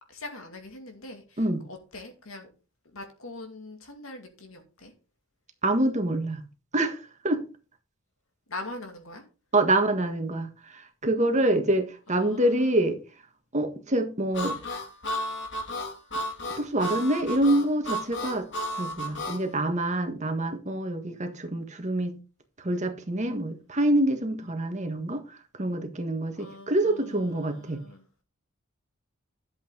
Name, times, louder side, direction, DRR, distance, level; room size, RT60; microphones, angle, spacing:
voice 1, 0.1-1.4 1.7-2.5 2.8-4.9 8.5-9.2 12.1-12.8 17.5-17.7 26.4-28.1, left 2 dB, 80° left, 2.5 m, -42 dB
voice 2, 5.6-6.4 6.7-7.4 9.5-13.0 13.5-14.6 16.4-22.2 22.6-27.8, right 1 dB, 35° right, 1.6 m, -26 dB
Harmonica, 14.3-19.4, equal, 60° left, 2.6 m, -33 dB
11.5 x 7.9 x 3.9 m
head